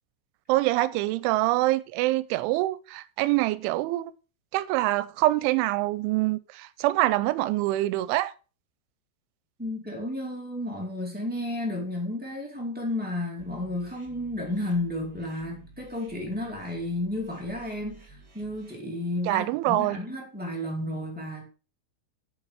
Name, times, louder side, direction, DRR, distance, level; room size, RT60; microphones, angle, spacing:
voice 1, 0.5-4.1 4.5-8.3 19.3-20.0, right 17 dB, 90° right, 3.0 m, -25 dB
voice 2, 9.6-21.5, left 1 dB, 10° right, 0.4 m, -32 dB
sound 1, 13.4-18.7, right 2 dB, 30° right, 2.4 m, -52 dB
8.1 x 7.9 x 4.7 m
omnidirectional pair, 5.4 m